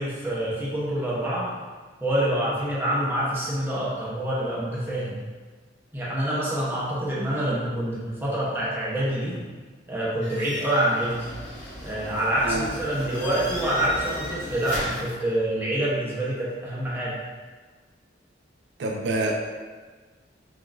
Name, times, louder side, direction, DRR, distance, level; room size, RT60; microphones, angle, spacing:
voice 1, 0.0-1.5 2.0-5.2 5.9-9.5 9.9-11.3 11.8-17.2, right 1 dB, 10° right, -8 dB, 0.8 m, -26 dB
sound 1, 10.2-15.1, equal, 70° left, 1.2 m, -36 dB
voice 2, 18.8-19.3, right 2 dB, 70° right, 0 dB, 0.4 m, -26 dB
3.7 x 3.5 x 2.5 m, 1.4 s
head